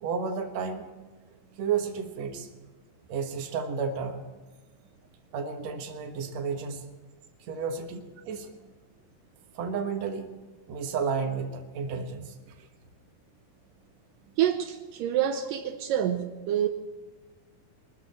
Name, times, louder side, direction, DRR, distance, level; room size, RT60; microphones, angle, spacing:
voice 1, 0.0-0.8 1.6-2.5 3.1-4.2 5.3-6.8 7.5-8.5 9.5-10.3 10.7-12.7, right 6 dB, 60° right, 4 dB, 2.4 m, -32 dB
voice 2, 14.4-16.7, right 10 dB, 80° right, 6 dB, 2.4 m, -27 dB
23.0 x 13.0 x 4.3 m, 1.3 s
omnidirectional pair, 4.0 m